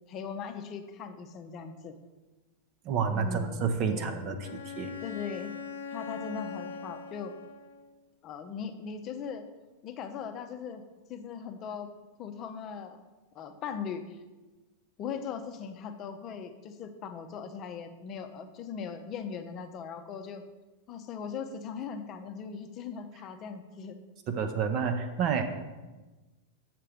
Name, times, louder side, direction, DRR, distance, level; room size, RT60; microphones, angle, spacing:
voice 1, 0.1-2.0 3.1-4.2 5.0-5.5 5.9-7.3 8.2-9.4 9.8-10.8 11.1-11.9 12.2-13.0 13.3-14.2 15.0-20.4 20.9-24.0, left 6 dB, 35° left, 8 dB, 0.7 m, -39 dB
voice 2, 2.8-4.9 24.3-25.4, right 6 dB, 40° right, 7 dB, 0.7 m, -29 dB
Bowed string instrument, 4.4-7.9, left 6 dB, 65° left, 0.5 m, -41 dB
7.7 x 5.9 x 4.9 m, 1.2 s
figure-of-eight pair, 90°, 0 cm